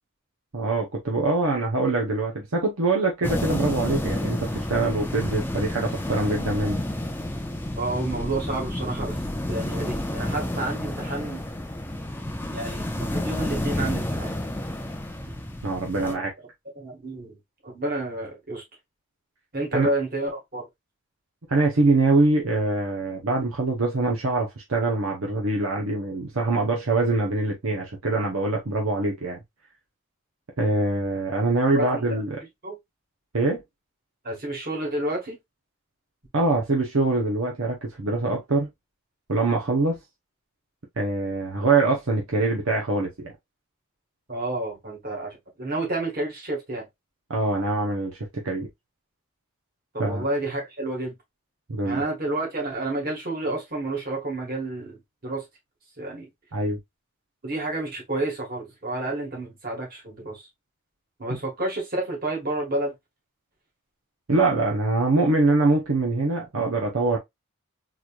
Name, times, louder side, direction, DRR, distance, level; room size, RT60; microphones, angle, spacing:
voice 1, 0.5-6.8 15.6-16.3 19.7-19.9 21.5-29.4 30.6-32.4 33.3-33.6 36.3-38.7 39.3-40.0 41.0-43.3 47.3-48.7 50.0-50.2 51.7-52.0 56.5-56.8 64.3-67.2, right 3 dB, 70° right, 0.8 m, -24 dB
sound 1, 3.2-16.1, left 1 dB, 10° left, 0.4 m, -30 dB
voice 2, 7.8-9.2 9.5-11.4 12.5-14.4 16.0-16.2 16.8-17.4 17.6-18.6 19.5-20.7 31.7-32.2 32.6-32.8 34.2-35.4 44.3-46.9 49.9-51.1 51.8-55.4 56.0-56.3 57.4-60.5 61.2-62.9, right 2 dB, 40° right, 1.8 m, -30 dB
4.0 x 3.1 x 2.4 m
head